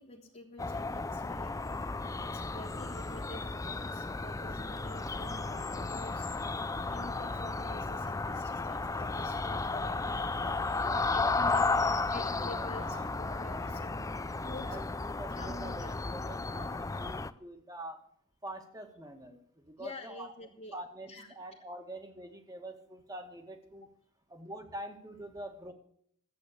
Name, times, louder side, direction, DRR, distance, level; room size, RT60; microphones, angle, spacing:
voice 1, 0.0-6.4 6.9-10.8 11.1-11.7 12.1-14.7 15.4-15.9 19.8-20.8 21.1-21.3, left 2 dB, 35° left, 0 dB, 1.3 m, -48 dB
sound 1, 0.6-17.3, left 3 dB, 15° left, 0.4 m, -34 dB
voice 2, 10.8-13.1 13.5-13.8 14.6-18.0 18.4-23.9 24.3-25.7, right 1 dB, 20° right, 5 dB, 1.9 m, -45 dB
14.0 x 8.5 x 6.8 m, 0.67 s
head